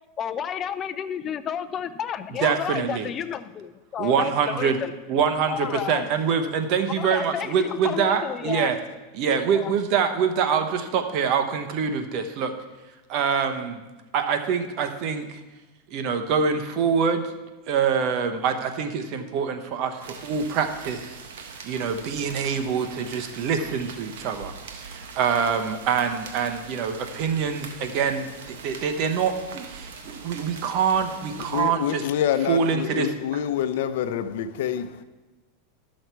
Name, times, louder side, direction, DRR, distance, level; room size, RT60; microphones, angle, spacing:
voice 1, 0.2-4.9 5.5-6.1 7.0-8.7 9.5-9.7, left 9 dB, 30° left, 0.6 m, -31 dB
voice 2, 2.4-3.1 4.0-4.8 5.1-8.8 9.1-12.5 13.1-13.8 14.1-15.3 15.9-17.3 17.7-21.2 21.6-32.0 32.5-33.1, right 6 dB, 50° right, 1.0 m, -25 dB
sound 1, 20.0-31.6, right 5 dB, 80° right, 1.3 m, -42 dB
voice 3, 31.3-35.0, left 9 dB, 70° left, 0.7 m, -27 dB
12.5 x 6.4 x 4.6 m
supercardioid pair, 125°, 0 cm